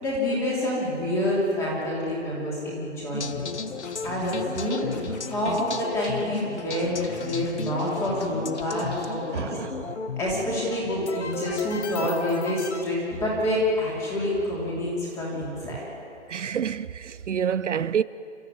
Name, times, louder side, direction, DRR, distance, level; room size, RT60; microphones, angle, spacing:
voice 1, 0.0-3.4 4.0-4.9 5.3-9.7 10.2-15.8, left 1 dB, 10° left, 3.1 m, -27 dB
sound 1, 3.1-12.8, left 5 dB, 70° left, 1.4 m, -35 dB
Scratching (performance technique), 3.8-4.6 4.9-5.7 6.0-6.1 6.3-8.3 8.5-9.1, left 3 dB, 35° left, 3.4 m, -48 dB
voice 2, 9.3-9.7 15.7-15.8 16.3-18.0, right 8 dB, 75° right, 0.6 m, -28 dB
29.5 x 13.5 x 9.4 m
hypercardioid pair, 165°, 36 cm